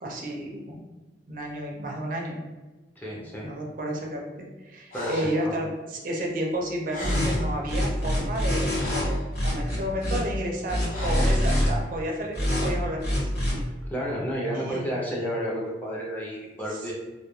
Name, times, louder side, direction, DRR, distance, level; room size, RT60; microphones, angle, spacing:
voice 1, 0.0-0.8 1.3-2.4 3.4-4.2 4.6-9.2 9.4-13.3 14.5-14.8 16.7-16.9, right 1 dB, 50° right, -1 dB, 0.4 m, -31 dB
voice 2, 3.0-3.5 4.9-5.7 13.9-16.9, equal, 10° left, -5 dB, 0.4 m, -31 dB
Breathing, 4.9-5.4 6.6-6.7 6.9-7.6 8.3-9.3 10.9-11.4, equal, 50° left, 0.7 m, -35 dB
sound 1, 7.0-7.4 7.7-9.0 9.3-10.2 10.7-11.7 12.3-12.7 13.0-13.5, equal, 65° left, 1.0 m, -25 dB
2.3 x 2.1 x 3.0 m, 1.2 s
head